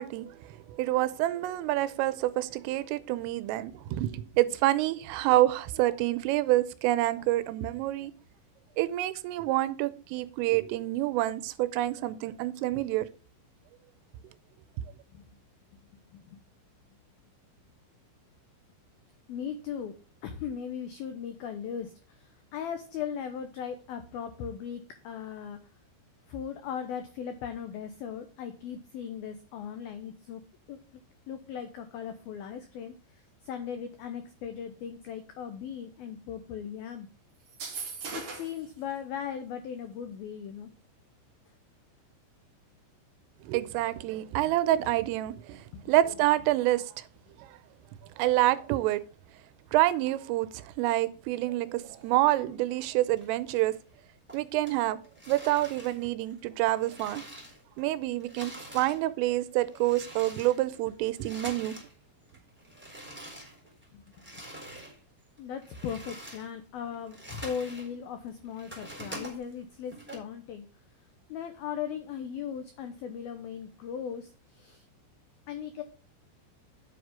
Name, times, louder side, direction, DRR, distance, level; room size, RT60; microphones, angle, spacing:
voice 1, 0.0-8.1 8.8-13.1 43.4-47.0 47.4-47.6 48.2-49.0 49.7-53.7 54.3-55.0 55.3-57.2 57.8-61.8, right 15 dB, 90° right, 3.3 m, -27 dB
voice 2, 19.3-20.0 20.2-25.6 26.3-30.4 30.7-30.8 31.3-37.1 38.1-40.7 45.7-45.9 63.9-64.0 64.3-64.4 65.4-70.7 71.3-74.9 75.5-75.8, left 8 dB, 85° left, 2.1 m, -38 dB
sound 1, 37.5-38.6, right 5 dB, 45° right, 1.8 m, -38 dB
sound 2, 51.7-52.8 53.2-54.0 54.3-57.9 58.1-61.9 62.2-65.0 65.4-67.9 68.3-70.2, right 1 dB, 5° right, 2.7 m, -46 dB
9.4 x 8.0 x 3.6 m
omnidirectional pair, 5.7 m